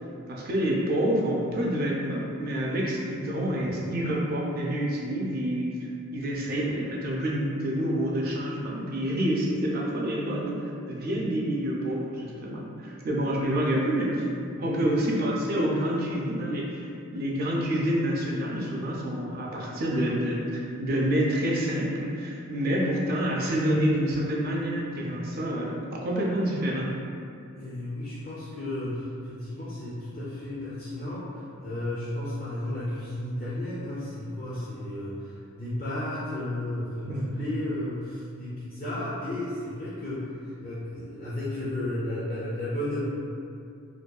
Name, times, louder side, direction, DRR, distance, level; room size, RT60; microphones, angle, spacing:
voice 1, 0.3-5.7 6.1-14.3 14.6-16.8 17.1-26.9 37.1-37.4, right 1 dB, 45° right, -3 dB, 0.4 m, -27 dB
voice 2, 14.5-14.9 27.5-40.3 40.6-43.1, left 1 dB, 30° left, -10 dB, 0.4 m, -33 dB
2.5 x 2.2 x 2.3 m, 2.5 s
head